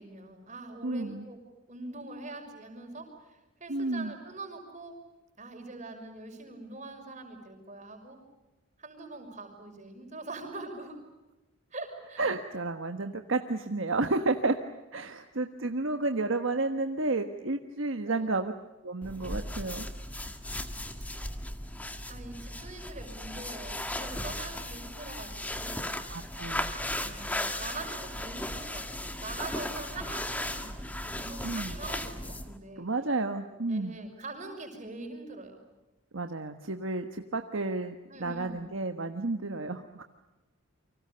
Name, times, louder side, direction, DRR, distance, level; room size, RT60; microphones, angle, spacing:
voice 1, 0.0-1.4 1.7-4.9 5.4-8.2 8.8-10.9 11.7-12.2 18.0-18.4 22.1-25.9 27.0-32.9 33.7-35.6 38.1-38.7, right 2 dB, 35° right, 4 dB, 6.0 m, -43 dB
voice 2, 0.8-1.3 3.7-4.1 12.2-14.6 14.9-18.5 18.8-19.9 26.1-26.7 31.4-31.8 32.8-33.9 36.1-40.0, right 2 dB, 65° right, 6 dB, 1.3 m, -31 dB
sound 1, 19.0-32.6, left 1 dB, 5° left, 1.8 m, -36 dB
30.0 x 25.0 x 6.9 m, 1.1 s
head